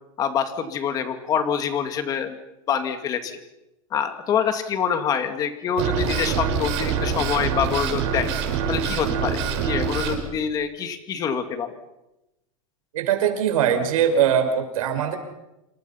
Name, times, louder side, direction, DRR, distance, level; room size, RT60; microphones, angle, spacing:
voice 1, 0.2-2.4 2.7-3.4 3.9-8.3 8.7-11.7, left 7 dB, 20° left, 8 dB, 2.2 m, -26 dB
sound 1, 5.8-10.2, right 6 dB, 50° right, 6.4 m, -25 dB
voice 2, 12.9-15.2, right 8 dB, 75° right, 6 dB, 5.5 m, -21 dB
28.0 x 26.5 x 5.8 m, 0.92 s
supercardioid pair, 175°, 18 cm